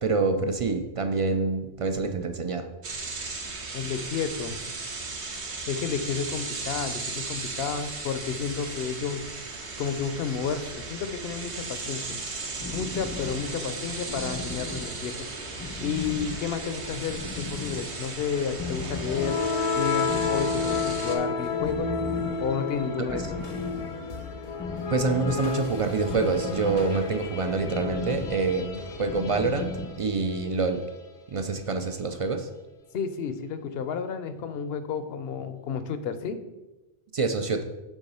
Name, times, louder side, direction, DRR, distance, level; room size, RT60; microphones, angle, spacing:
voice 1, 0.0-2.7 24.9-29.7 30.0-30.8 31.3-32.5 37.1-37.6, right 4 dB, 50° right, 7 dB, 0.4 m, -26 dB
sound 1, 2.8-21.1, right 3 dB, 80° right, 1.4 m, -36 dB
voice 2, 3.7-4.6 5.7-9.2 9.8-12.2 12.7-15.1 15.8-19.4 19.7-21.9 22.4-23.4 32.9-36.4, left 6 dB, 70° left, 11 dB, 0.8 m, -31 dB
sound 2, 12.6-30.0, left 3 dB, 25° left, 0.4 m, -38 dB
sound 3, 18.8-30.7, left 4 dB, 85° left, 1.2 m, -31 dB
7.1 x 3.9 x 5.4 m, 1.1 s
omnidirectional pair, 1.1 m